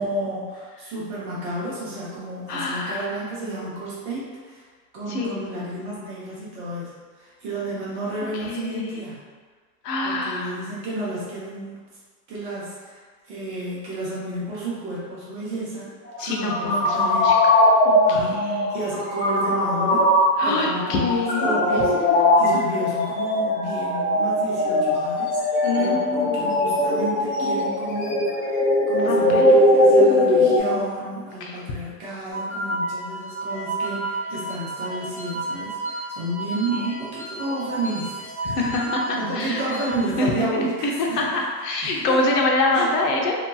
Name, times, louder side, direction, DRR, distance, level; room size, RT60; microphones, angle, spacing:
voice 1, 0.0-4.6 4.9-9.2 10.0-11.8 12.3-15.9 16.2-17.3 18.0-20.1 20.4-41.3 41.8-42.2 42.7-42.9, right 1 dB, 25° right, -7 dB, 0.6 m, -31 dB
voice 2, 2.5-3.1 5.1-5.4 8.5-9.0 9.8-10.5 16.2-17.3 17.8-18.7 20.4-21.6 22.5-22.6 25.6-26.6 29.0-29.5 30.6-30.7 31.4-31.5 36.7-36.9 38.4-39.6 40.2-43.4, left 2 dB, 75° left, 0 dB, 0.7 m, -25 dB
sound 1, 16.1-30.6, left 1 dB, 30° left, 0.4 m, -20 dB
sound 2, 32.3-40.0, right 2 dB, 5° left, 0.9 m, -32 dB
2.8 x 2.6 x 2.2 m, 1.5 s
supercardioid pair, 140°, 48 cm